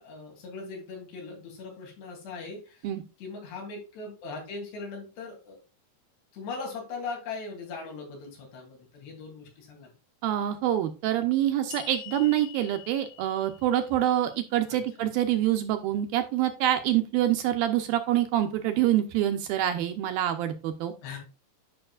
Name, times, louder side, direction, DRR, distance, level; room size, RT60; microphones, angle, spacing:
voice 1, 0.0-2.9 3.2-5.6 6.3-9.9 14.7-14.8 21.0-21.2, left 4 dB, 85° left, 0 dB, 5.0 m, -39 dB
voice 2, 10.2-20.9, right 12 dB, 75° right, 7 dB, 2.3 m, -26 dB
sound 1, 11.7-15.1, left 14 dB, 70° left, 2.2 m, -47 dB
11.0 x 5.7 x 2.4 m, 0.31 s
omnidirectional pair, 4.7 m